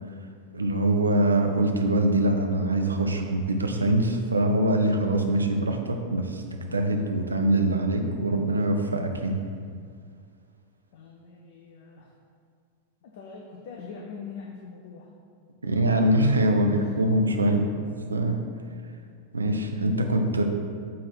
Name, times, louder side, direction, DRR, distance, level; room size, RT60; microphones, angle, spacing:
voice 1, 0.5-9.4 15.6-17.8 18.1-18.4 19.3-20.4, right 1 dB, 75° right, 4 dB, 0.7 m, -23 dB
voice 2, 10.9-12.1 13.0-15.1 16.7-16.9 17.4-17.6, left 5 dB, 55° left, -1 dB, 0.7 m, -43 dB
7.6 x 3.8 x 6.0 m, 2.1 s
figure-of-eight pair, 90°, 0 cm